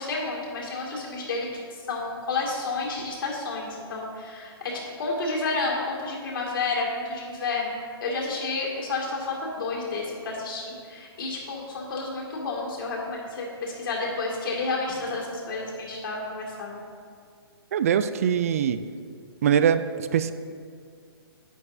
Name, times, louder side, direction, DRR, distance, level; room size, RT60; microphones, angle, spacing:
voice 1, 0.0-7.7 8.0-16.8, left 3 dB, 55° left, -2 dB, 2.3 m, -30 dB
voice 2, 17.7-18.8 19.4-19.8 20.1-20.3, right 8 dB, 35° right, 12 dB, 0.3 m, -22 dB
10.5 x 8.9 x 2.7 m, 2.2 s
hypercardioid pair, 165°, 14 cm